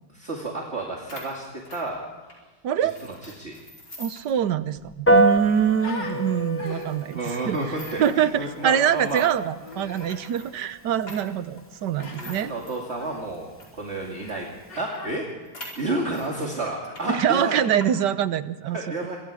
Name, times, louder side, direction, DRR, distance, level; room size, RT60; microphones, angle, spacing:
voice 1, 0.1-2.0 2.8-3.5 7.1-9.2 12.1-14.5 14.8-15.3 15.8-17.6 18.7-19.2, right 2 dB, 40° right, -1 dB, 2.6 m, -31 dB
sound 1, 0.8-0.9 1.1-2.4 2.9-4.4 4.7-4.8 5.2-5.3 5.9-6.0 6.7-8.2 8.8-13.8 14.3-14.4 14.6-14.7 14.9-16.3 16.7-17.1 17.3-17.9, left 1 dB, 65° left, 5.7 m, -45 dB
voice 2, 2.6-3.0 4.0-7.6 8.0-12.5 17.1-18.8, right 9 dB, 75° right, 13 dB, 1.5 m, -24 dB
Human voice, 4.2-4.3 4.6-6.2 6.6-7.1 7.7-8.2 9.6-10.1 12.0-12.4 13.0-13.2 14.2-14.4 14.7-15.2 15.7-16.8, left 2 dB, 80° left, 4.1 m, -41 dB
Piano, 5.1-14.8, right 1 dB, 10° left, 0.6 m, -29 dB
27.0 x 24.0 x 5.0 m, 1.3 s
omnidirectional pair, 1.9 m